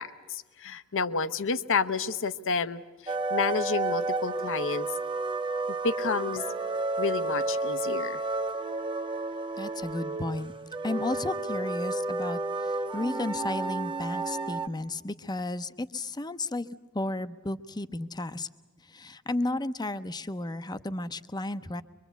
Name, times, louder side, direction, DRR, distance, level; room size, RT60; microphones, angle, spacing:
voice 1, 0.0-4.9 5.8-6.4 7.0-8.2, left 5 dB, 60° left, 14 dB, 0.8 m, -30 dB
sound 1, 3.1-14.7, right 2 dB, 20° right, 0.7 m, -31 dB
voice 2, 9.6-10.5 10.8-16.7 16.9-18.5 18.9-21.8, left 2 dB, 20° left, 12 dB, 0.7 m, -33 dB
24.0 x 23.5 x 8.2 m, 1.3 s
head